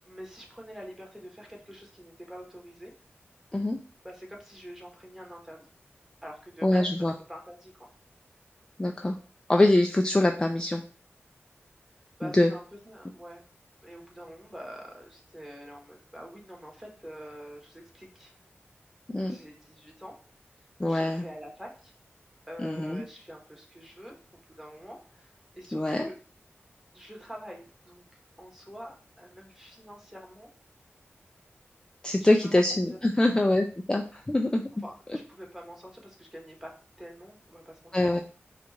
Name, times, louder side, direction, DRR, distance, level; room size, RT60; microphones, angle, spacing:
voice 1, 0.0-2.9 4.0-5.7 6.2-7.9 12.2-13.4 13.8-18.3 19.2-20.2 20.9-21.9 22.5-26.1 26.9-30.5 32.2-32.6 32.9-33.0 34.8-36.7 37.0-38.2, equal, 10° right, 0 dB, 1.2 m, -46 dB
voice 2, 6.6-7.1 8.8-9.2 9.5-10.8 12.2-12.5 19.1-19.4 20.8-21.2 22.6-23.0 25.7-26.1 32.0-34.7 37.9-38.2, left 1 dB, 15° left, 3 dB, 0.3 m, -24 dB
4.4 x 2.4 x 3.9 m, 0.38 s
wide cardioid pair, 95°, 5 cm